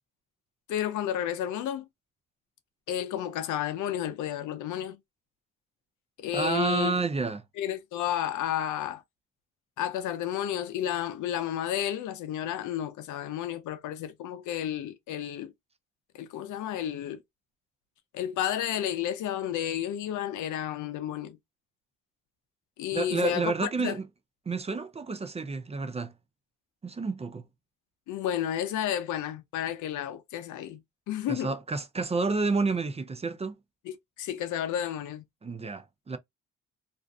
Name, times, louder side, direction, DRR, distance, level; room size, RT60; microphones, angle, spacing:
voice 1, 0.7-1.9 2.9-5.0 6.2-6.9 7.6-9.0 9.8-15.5 16.1-17.2 18.1-21.4 22.8-24.0 28.1-30.8 31.1-31.5 33.9-35.2, left 10 dB, 80° left, 0.6 m, -31 dB
voice 2, 6.3-7.4 22.9-24.1 24.5-26.1 26.8-27.4 31.3-33.5 35.4-36.2, right 4 dB, 20° right, 0.4 m, -29 dB
2.5 x 2.5 x 2.2 m
cardioid pair, 90°, 30 cm